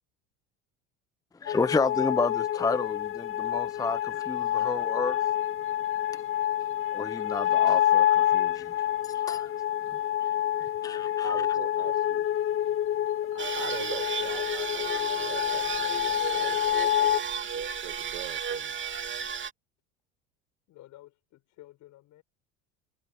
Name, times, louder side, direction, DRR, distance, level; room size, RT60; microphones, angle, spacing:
voice 1, 1.4-5.2 6.1-6.2 6.9-8.7 9.0-9.5 10.2-10.3 10.8-11.4, left 4 dB, 10° left, 0.8 m, -31 dB
sound 1, 1.5-17.2, left 11 dB, 40° left, 0.9 m, -27 dB
voice 2, 11.2-12.3 13.3-17.2 17.5-18.8, right 23 dB, 80° right, 4.9 m, -43 dB
sound 2, 13.4-19.5, right 7 dB, 35° right, 3.0 m, -34 dB
voice 3, 20.7-22.2, left 15 dB, 60° left, 6.8 m, -52 dB
supercardioid pair, 90°, 34 cm